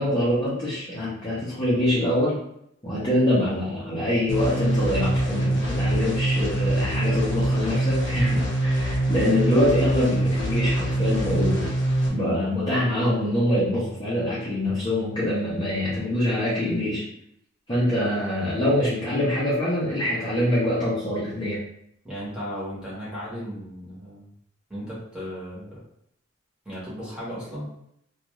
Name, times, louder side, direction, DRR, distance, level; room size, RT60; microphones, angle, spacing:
voice 1, 0.0-2.4 2.8-11.7 12.1-17.0 17.7-21.6, left 1 dB, 20° left, -9 dB, 0.7 m, -24 dB
sound 1, 4.3-12.1, right 1 dB, 55° left, 0.8 m, -24 dB
voice 2, 22.0-24.3 24.7-25.8 26.6-27.7, equal, 5° right, -8 dB, 1.0 m, -35 dB
2.5 x 2.3 x 3.0 m, 0.75 s
head